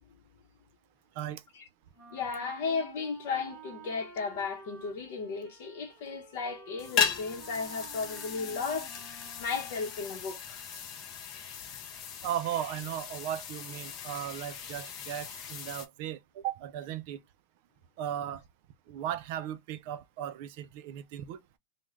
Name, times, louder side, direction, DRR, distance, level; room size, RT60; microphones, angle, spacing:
Wind instrument woodwind instrument, 1.9-10.1, right 4 dB, 20° right, 0.9 m, -52 dB
voice 1, 2.1-10.6, left 5 dB, 60° left, 0.8 m, -35 dB
sound 1, 6.8-15.9, left 7 dB, 30° left, 0.5 m, -37 dB
voice 2, 12.2-17.2 18.0-18.4 18.9-21.4, right 11 dB, 50° right, 0.4 m, -36 dB
3.1 x 2.1 x 3.5 m
supercardioid pair, 170°, 0 cm